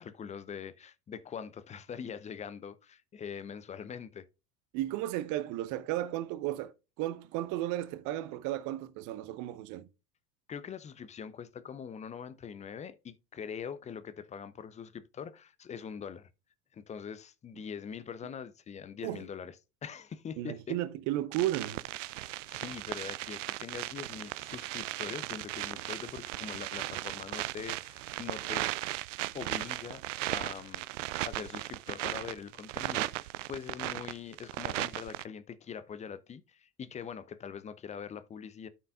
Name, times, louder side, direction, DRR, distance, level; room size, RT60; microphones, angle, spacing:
voice 1, 0.0-4.3 10.5-16.3 16.7-19.6 19.8-20.7 22.1-28.7 29.3-30.0 30.3-38.7, left 7 dB, 15° left, 0.5 m, -43 dB
voice 2, 4.7-6.7 7.0-9.9 19.0-19.2 20.4-21.8, right 14 dB, 40° right, 0.8 m, -34 dB
sound 1, 21.3-35.2, right 17 dB, 60° right, 0.5 m, -37 dB
12.5 x 5.5 x 2.4 m
figure-of-eight pair, 70°, 44 cm